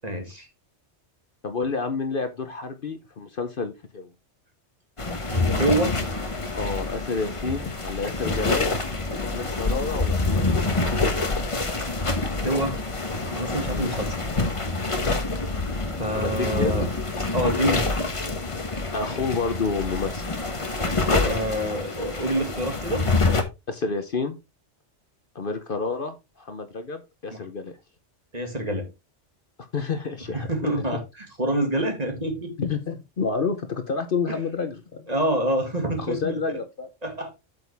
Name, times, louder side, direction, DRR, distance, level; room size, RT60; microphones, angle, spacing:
voice 1, 0.0-0.5 5.3-6.0 12.2-12.8 13.3-14.2 15.9-16.9 17.3-17.9 21.1-23.1 27.3-27.4 28.3-28.9 30.3-32.5 34.3-34.4 35.1-36.6 37.0-37.3, right 1 dB, 35° right, 2.2 m, -27 dB
voice 2, 1.4-4.1 6.5-8.7 9.1-10.6 13.7-13.9 16.1-16.7 18.9-20.3 23.7-24.4 25.3-27.7 29.7-30.7 32.6-35.1 36.0-36.9, left 4 dB, 50° left, 1.0 m, -29 dB
sound 1, 5.0-23.4, left 3 dB, 30° left, 1.1 m, -26 dB
8.2 x 6.9 x 3.4 m
omnidirectional pair, 1.2 m